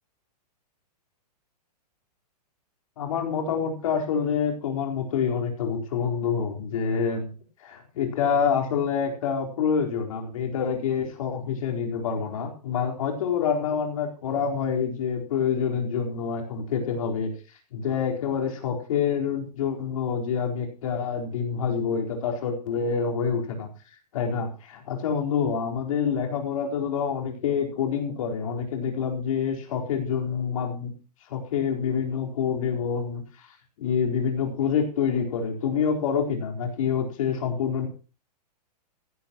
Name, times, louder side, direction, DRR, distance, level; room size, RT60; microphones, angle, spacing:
voice 1, 3.0-7.3 7.6-17.3 17.7-23.7 24.1-30.9 31.3-33.5 33.8-37.9, left 6 dB, 55° left, 2 dB, 4.3 m, -27 dB
16.5 x 15.0 x 3.0 m, 0.35 s
hypercardioid pair, 170°, 21 cm